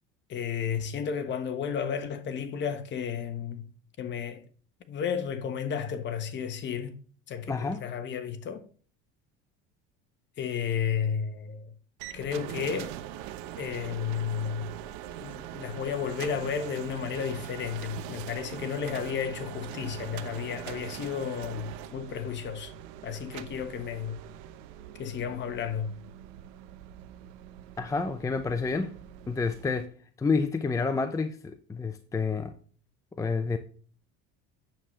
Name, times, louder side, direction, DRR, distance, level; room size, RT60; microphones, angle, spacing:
voice 1, 0.3-3.7 4.0-4.4 4.9-7.0 7.3-8.7 10.4-11.7 12.1-12.9 13.6-14.7 15.2-22.7 23.0-24.2 25.0-25.9, left 7 dB, 40° left, 1.2 m, -32 dB
voice 2, 7.5-7.8 27.8-28.9 29.3-29.9 30.2-32.5 33.2-33.6, left 4 dB, 10° left, 0.6 m, -29 dB
sound 1, 12.0-29.9, right 12 dB, 75° right, 0.9 m, -42 dB
8.9 x 7.3 x 3.2 m
cardioid pair, 130°, 29 cm